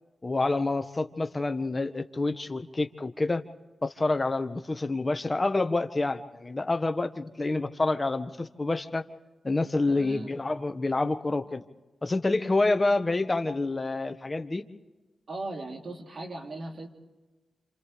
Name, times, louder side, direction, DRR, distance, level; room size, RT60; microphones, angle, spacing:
voice 1, 0.2-3.4 3.8-9.0 9.4-11.6 12.0-14.6, left 2 dB, 35° left, 8 dB, 1.4 m, -28 dB
voice 2, 9.9-10.3 15.3-16.9, right 2 dB, 60° right, 1 dB, 3.2 m, -38 dB
28.0 x 27.5 x 3.4 m, 1.2 s
cardioid pair, 45°, 0 cm